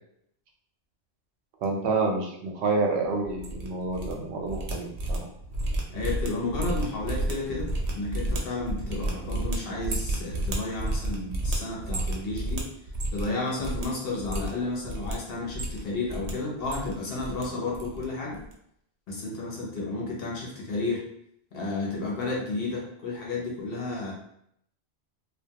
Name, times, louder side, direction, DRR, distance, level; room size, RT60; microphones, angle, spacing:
voice 1, 1.6-5.2, right 3 dB, 80° right, 1 dB, 0.8 m, -28 dB
sound 1, 3.2-4.1 4.4-13.3 13.6-13.9 14.2-15.1 15.5-16.3 16.6-17.4 17.7-18.0 18.3-18.5, right 1 dB, 55° right, 0.4 m, -31 dB
voice 2, 5.9-12.7 13.1-18.4 19.1-21.0 21.5-24.1, left 3 dB, 65° left, -3 dB, 0.9 m, -32 dB
2.3 x 2.2 x 2.8 m, 0.73 s
omnidirectional pair, 1.1 m